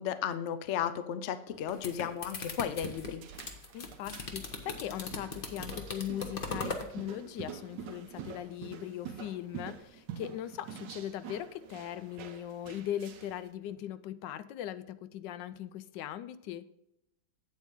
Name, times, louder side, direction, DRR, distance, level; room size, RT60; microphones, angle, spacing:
voice 1, 0.0-3.2, left 9 dB, 65° left, 12 dB, 0.7 m, -34 dB
sound 1, 1.5-6.9, left 4 dB, 40° left, 0.9 m, -39 dB
sound 2, 2.5-13.4, right 7 dB, 85° right, 1.5 m, -46 dB
voice 2, 3.7-16.7, left 11 dB, 85° left, 13 dB, 1.2 m, -39 dB
8.2 x 8.1 x 3.6 m, 0.81 s
omnidirectional pair, 1.9 m